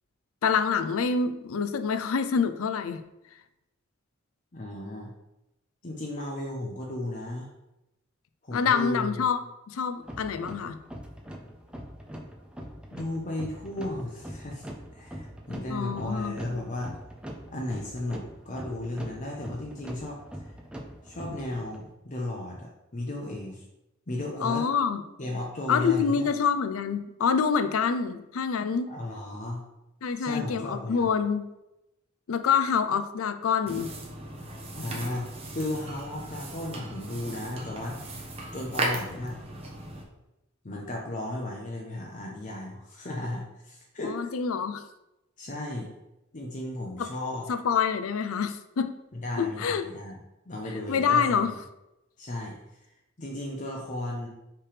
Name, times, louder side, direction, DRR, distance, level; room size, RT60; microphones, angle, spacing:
voice 1, 0.4-3.0 8.5-9.4 9.7-10.8 15.7-16.3 24.4-25.0 25.7-28.9 30.0-31.5 32.3-33.9 44.1-44.8 47.0-47.1 47.5-48.9 49.4-49.9 50.9-51.5, left 6 dB, 85° left, 10 dB, 0.5 m, -26 dB
voice 2, 4.5-5.1 5.8-7.5 8.4-9.2 12.9-14.7 14.9-16.9 17.5-20.6 21.0-23.7 24.1-24.7 25.2-26.3 28.9-29.6 30.2-31.1 34.7-35.3 35.5-39.4 40.6-44.3 45.4-45.9 46.3-47.5 49.1-50.2 50.5-51.5 52.2-52.6 53.2-54.3, left 1 dB, 40° left, -1 dB, 0.8 m, -35 dB
sound 1, 10.0-21.9, equal, 5° right, 0.6 m, -42 dB
sound 2, 33.7-40.0, right 2 dB, 30° right, 1.1 m, -37 dB
5.7 x 3.4 x 4.9 m, 0.93 s
head